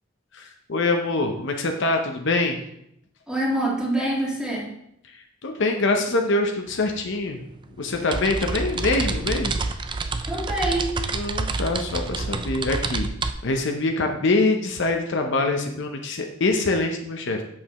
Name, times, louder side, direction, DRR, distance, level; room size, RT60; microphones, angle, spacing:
voice 1, 0.3-2.6 5.0-7.4 7.8-9.6 11.1-13.1 13.4-17.4, left 2 dB, 60° left, 3 dB, 0.7 m, -24 dB
voice 2, 3.3-4.6 10.3-11.0, right 1 dB, 5° right, -4 dB, 1.6 m, -25 dB
sound 1, 6.7-6.8 7.1-13.3, right 3 dB, 25° right, 0.3 m, -28 dB
7.5 x 6.5 x 3.0 m, 0.76 s
head